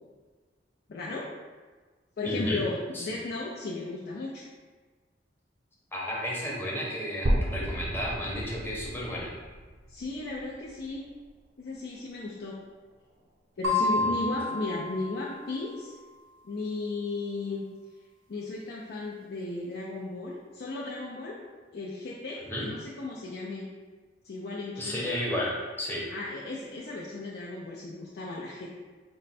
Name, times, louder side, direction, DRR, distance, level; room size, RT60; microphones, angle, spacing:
voice 1, 0.9-1.2 2.2-4.4 9.9-11.0 11.6-12.5 13.6-15.9 16.4-17.6 18.3-21.4 21.7-23.7 24.2-25.1 26.1-28.8, left 3 dB, 60° left, -4 dB, 0.5 m, -35 dB
voice 2, 2.2-2.6 2.9-3.1 5.9-9.3 22.5-22.7 24.8-26.1, equal, 10° left, -4 dB, 0.8 m, -32 dB
sound 1, 7.2-11.2, right 1 dB, 40° right, 0.6 m, -33 dB
sound 2, 13.6-16.1, left 3 dB, 85° right, 0.8 m, -30 dB
4.3 x 2.1 x 4.1 m, 1.4 s
head